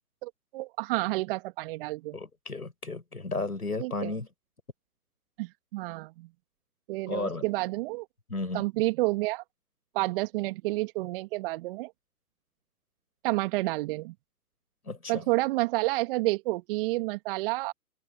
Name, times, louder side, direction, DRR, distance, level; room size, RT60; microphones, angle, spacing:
voice 1, 0.2-2.2 3.8-4.1 5.4-6.3 6.9-8.1 8.5-9.4 9.9-11.9 13.2-14.1 15.1-17.7, right 21 dB, 40° right, 2.2 m, -30 dB
voice 2, 2.1-4.3 7.1-7.4 8.3-8.6 14.9-15.2, left 3 dB, 90° left, 6.4 m, -34 dB
open air
figure-of-eight pair, 120°, 44 cm